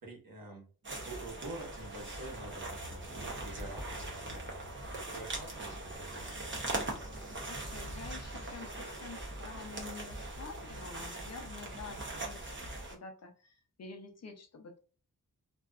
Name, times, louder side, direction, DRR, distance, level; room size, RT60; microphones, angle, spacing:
voice 1, 0.0-4.5 4.9-6.4, right 2 dB, 90° right, -2 dB, 1.2 m, -47 dB
sound 1, 0.8-12.9, right 2 dB, 35° right, 0.6 m, -41 dB
sound 2, 2.5-10.2, left 1 dB, 20° left, 0.8 m, -53 dB
voice 2, 7.5-12.6 12.9-14.8, left 4 dB, 50° left, 6 dB, 0.5 m, -48 dB
2.5 x 2.3 x 2.2 m, 0.37 s
wide cardioid pair, 165°, 34 cm